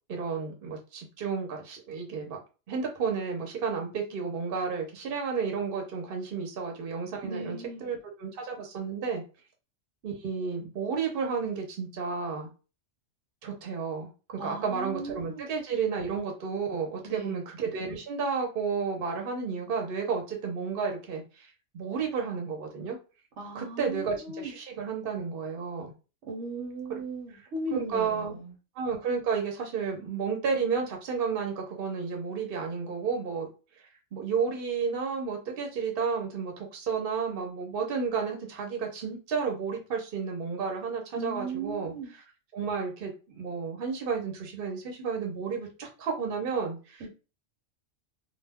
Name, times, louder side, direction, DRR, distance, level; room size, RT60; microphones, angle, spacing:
voice 1, 0.1-2.4 2.7-9.2 10.0-12.5 13.4-21.5 21.7-23.0 23.5-25.9 26.9-27.0 27.7-28.4 28.8-33.5 34.1-42.2 42.5-47.0, right 5 dB, 55° right, 0.9 m, -32 dB
voice 2, 7.2-7.9 14.4-15.5 17.0-17.4 23.4-24.5 26.2-28.5 41.1-42.1 47.0-47.1, right 3 dB, 80° right, 1.1 m, -37 dB
2.3 x 2.2 x 3.4 m
omnidirectional pair, 1.2 m